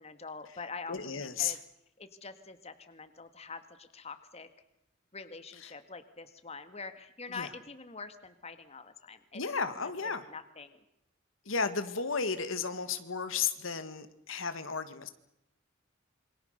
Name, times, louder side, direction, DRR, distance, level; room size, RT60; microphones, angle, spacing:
voice 1, 0.0-1.6 2.0-4.5 5.1-9.4 10.0-10.8, left 4 dB, 30° left, 9 dB, 1.8 m, -45 dB
voice 2, 0.9-1.6 7.3-7.5 9.3-10.2 11.5-15.1, left 5 dB, 80° left, 10 dB, 1.8 m, -33 dB
27.5 x 24.5 x 6.7 m, 0.82 s
head